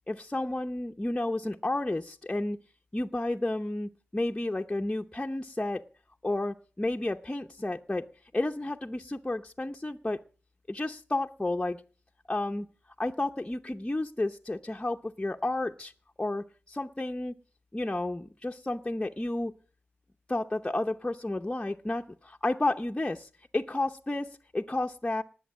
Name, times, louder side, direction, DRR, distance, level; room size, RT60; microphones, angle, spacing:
voice 1, 0.1-2.6 2.9-5.8 6.2-8.0 8.3-10.2 10.7-11.8 12.3-12.7 13.0-15.9 16.2-17.4 17.7-19.5 20.3-25.2, left 2 dB, 20° left, 3 dB, 0.8 m, -31 dB
19.5 x 7.8 x 7.4 m, 0.39 s
wide cardioid pair, 75°, 4 cm